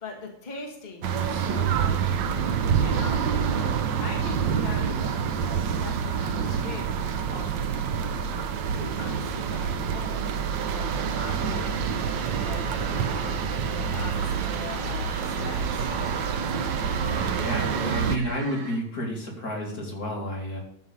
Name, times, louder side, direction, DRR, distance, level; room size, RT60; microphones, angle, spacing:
voice 1, 0.0-3.7 4.0-7.8 8.1-8.4 8.7-10.2 10.7-11.8 12.4-15.9, left 3 dB, 25° left, 0 dB, 1.5 m, -41 dB
sound 1, 1.0-18.2, right 7 dB, 70° right, 1.4 m, -27 dB
sound 2, 11.4-18.8, right 5 dB, 55° right, 1.6 m, -42 dB
voice 2, 17.2-20.6, equal, 45° left, -1 dB, 2.7 m, -31 dB
12.5 x 4.6 x 6.8 m, 0.71 s
omnidirectional pair, 2.3 m